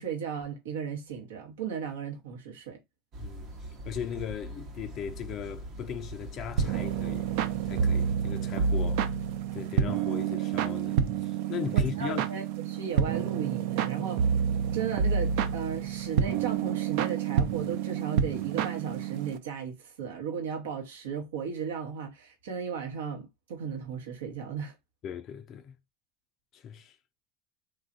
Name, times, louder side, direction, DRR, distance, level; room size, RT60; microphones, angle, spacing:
voice 1, 0.0-2.8 11.7-14.3 14.7-24.7, right 7 dB, 85° right, 0.8 m, -36 dB
sound 1, 3.1-8.2, right 1 dB, 50° right, 0.7 m, -42 dB
voice 2, 3.2-7.3 7.6-9.1 9.5-12.3 25.0-25.7 26.5-27.0, left 8 dB, 45° left, 0.3 m, -38 dB
sound 2, 6.6-19.4, right 7 dB, 70° right, 0.3 m, -28 dB
3.1 x 2.4 x 2.4 m
supercardioid pair, 100°, 0 cm